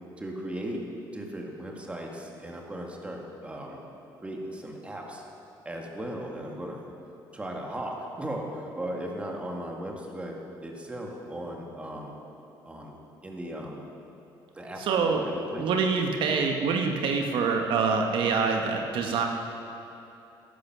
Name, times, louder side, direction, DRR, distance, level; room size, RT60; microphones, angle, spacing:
voice 1, 0.2-0.8 1.1-3.8 4.2-5.2 5.6-6.8 7.3-10.3 10.6-12.1 12.6-13.0 13.2-13.8 14.5-15.9, right 1 dB, 15° right, 0 dB, 1.9 m, -37 dB
voice 2, 14.9-15.2 15.6-19.3, right 5 dB, 70° right, 3 dB, 1.2 m, -25 dB
13.5 x 12.0 x 6.0 m, 2.8 s
cardioid pair, 125°, 9 cm